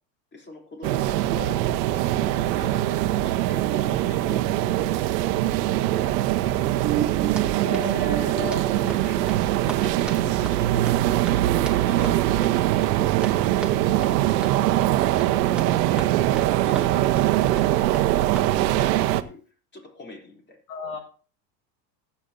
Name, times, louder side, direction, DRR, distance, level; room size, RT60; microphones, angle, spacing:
voice 1, 0.3-5.9 6.3-7.5 7.8-8.2 9.0-12.3 12.7-20.6, left 2 dB, 20° left, 3.3 m, -43 dB
sound 1, 0.8-19.2, right 14 dB, 70° right, 1.1 m, -22 dB
sound 2, 3.5-8.9, right 13 dB, 30° right, 1.0 m, -35 dB
Run, 7.2-19.0, right 3 dB, ahead, 2.3 m, -40 dB
voice 2, 7.6-8.9 20.7-21.0, left 5 dB, 65° left, 6.7 m, -33 dB
21.0 x 8.4 x 2.7 m
hypercardioid pair, 90°, 50 cm